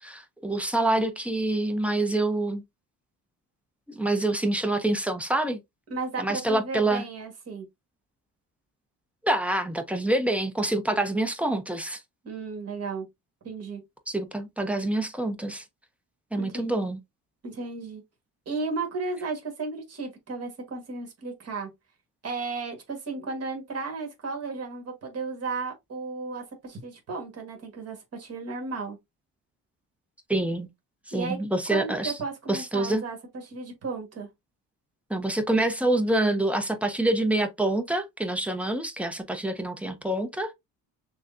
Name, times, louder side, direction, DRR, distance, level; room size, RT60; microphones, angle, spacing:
voice 1, 0.0-2.6 3.9-5.6 6.2-7.0 9.2-12.0 14.1-15.6 16.3-17.0 30.3-30.7 31.1-32.1 32.5-33.0 35.1-40.5, right 1 dB, 5° right, 0.5 m, -26 dB
voice 2, 5.9-7.7 12.2-13.0 13.4-13.8 16.3-16.7 17.4-18.0 18.4-21.7 22.2-29.0 31.1-31.4 31.7-34.3, right 4 dB, 45° right, 1.5 m, -34 dB
6.2 x 2.2 x 2.5 m
cardioid pair, 150°, 36 cm